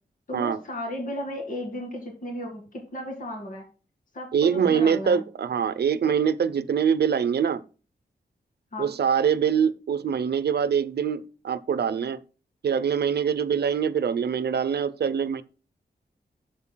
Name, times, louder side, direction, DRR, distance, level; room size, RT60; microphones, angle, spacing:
voice 1, 0.3-3.6 4.1-5.2 8.7-8.9, left 1 dB, 50° left, 2.2 m, -34 dB
voice 2, 4.3-7.6 8.8-12.2 12.6-15.4, right 7 dB, 70° right, 0.7 m, -24 dB
11.0 x 8.1 x 2.3 m
wide cardioid pair, 155°, 18 cm